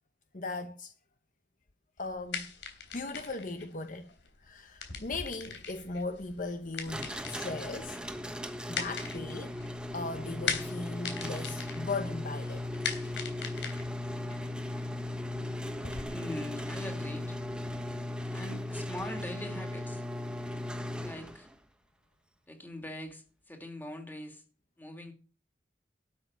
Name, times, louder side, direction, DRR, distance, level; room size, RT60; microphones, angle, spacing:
voice 1, 0.3-0.9 2.0-2.5 2.9-8.0 8.7-9.6 9.9-12.7 15.3-16.1, left 3 dB, 45° left, 0.9 m, -38 dB
sound 1, 2.0-16.0, left 6 dB, 85° left, 3.4 m, -41 dB
sound 2, 6.9-21.5, left 1 dB, 5° right, 1.2 m, -37 dB
voice 2, 16.0-17.4 18.3-20.0 21.0-21.5 22.5-24.4 24.8-25.1, left 1 dB, 10° left, 2.8 m, -42 dB
12.5 x 7.1 x 9.0 m
head